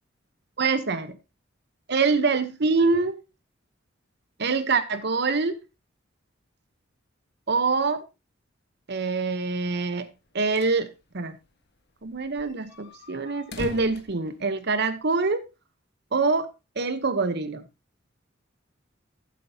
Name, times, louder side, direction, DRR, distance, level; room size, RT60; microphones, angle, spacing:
voice 1, 0.6-1.2 1.9-3.2 4.4-5.6 7.5-8.0 8.9-10.1 10.3-10.9 11.1-11.4 12.0-15.4 16.1-16.5 16.8-17.6, right 4 dB, 60° right, 1.0 m, -25 dB
sound 1, 10.2-10.8 11.1-11.2 11.5-11.6 12.0-15.0, left 1 dB, 55° left, 1.5 m, -42 dB
14.5 x 7.7 x 2.8 m
head